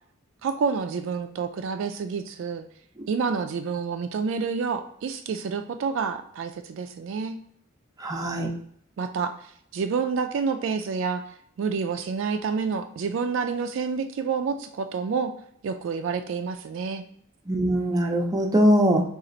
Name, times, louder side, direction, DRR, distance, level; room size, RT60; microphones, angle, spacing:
voice 1, 0.4-2.6 3.1-7.4 9.0-9.5 9.7-11.2 11.6-15.3 15.6-17.0, right 5 dB, 60° right, 7 dB, 0.3 m, -28 dB
voice 2, 8.0-8.5 17.5-19.0, equal, 20° right, 1 dB, 0.6 m, -21 dB
4.1 x 2.4 x 3.8 m, 0.64 s
head